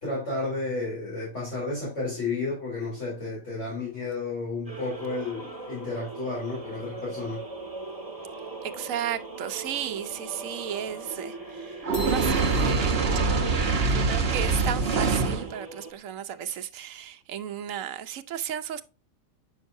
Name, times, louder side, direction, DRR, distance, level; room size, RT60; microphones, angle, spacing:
voice 1, 0.0-7.4, left 3 dB, 60° left, 4.0 m, -32 dB
sound 1, 4.7-15.9, right 3 dB, 15° right, 1.5 m, -40 dB
voice 2, 8.6-13.2 13.7-18.8, right 9 dB, 70° right, 1.0 m, -34 dB
Fire, 11.8-15.5, right 4 dB, 50° right, 1.1 m, -24 dB
sound 2, 11.9-14.6, left 1 dB, 40° left, 2.0 m, -43 dB
8.0 x 6.3 x 2.6 m
omnidirectional pair, 1.5 m